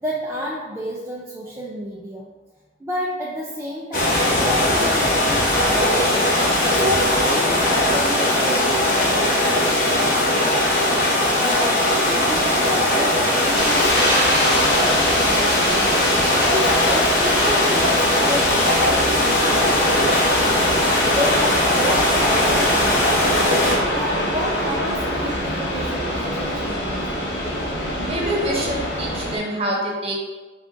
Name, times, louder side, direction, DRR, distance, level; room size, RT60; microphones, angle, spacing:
voice 1, 0.0-2.3 2.8-6.4 6.7-9.3 11.4-15.9 16.5-20.8 21.1-23.2 23.9-27.0, equal, 15° right, -4 dB, 0.4 m, -30 dB
sound 1, 3.9-23.8, left 1 dB, 50° left, 0.8 m, -19 dB
sound 2, 12.4-12.7 13.1-13.2 13.6-15.4 15.7-16.0 17.2-17.5, right 3 dB, 85° right, 0.8 m, -32 dB
sound 3, 13.5-29.4, left 1 dB, 85° left, 0.8 m, -24 dB
voice 2, 28.1-30.2, right 1 dB, 35° right, -3 dB, 1.0 m, -26 dB
4.9 x 2.4 x 3.8 m, 1.3 s
head